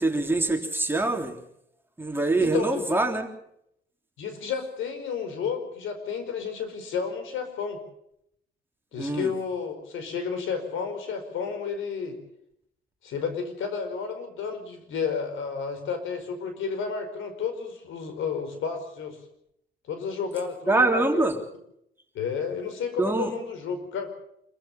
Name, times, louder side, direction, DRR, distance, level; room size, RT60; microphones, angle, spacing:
voice 1, 0.0-1.3 2.0-3.3 9.0-9.3 20.7-21.4 23.0-23.3, right 2 dB, 10° right, 3 dB, 3.5 m, -24 dB
voice 2, 2.4-2.8 4.2-7.8 8.9-12.2 13.0-19.2 19.9-21.3 22.1-24.1, left 6 dB, 80° left, 8 dB, 5.1 m, -31 dB
26.5 x 15.0 x 7.2 m, 0.75 s
cardioid pair, 90°, 20 cm